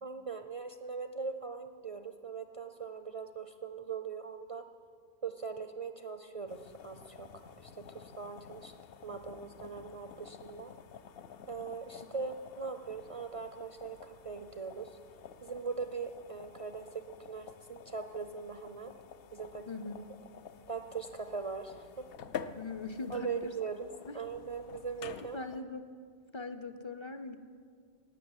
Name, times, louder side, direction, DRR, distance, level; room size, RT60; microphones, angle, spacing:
voice 1, 0.0-4.6 5.2-7.3 7.6-8.7 9.0-10.7 11.5-15.0 15.4-18.9 19.3-19.8 20.7-22.1 23.1-25.4, right 5 dB, 45° right, 8 dB, 0.5 m, -40 dB
sound 1, 6.5-25.6, left 7 dB, 65° left, 0.7 m, -50 dB
voice 2, 22.5-23.5 24.1-24.2 25.3-25.9 26.3-27.4, left 3 dB, 35° left, 9 dB, 0.5 m, -40 dB
17.0 x 6.2 x 9.5 m, 2.1 s
omnidirectional pair, 1.1 m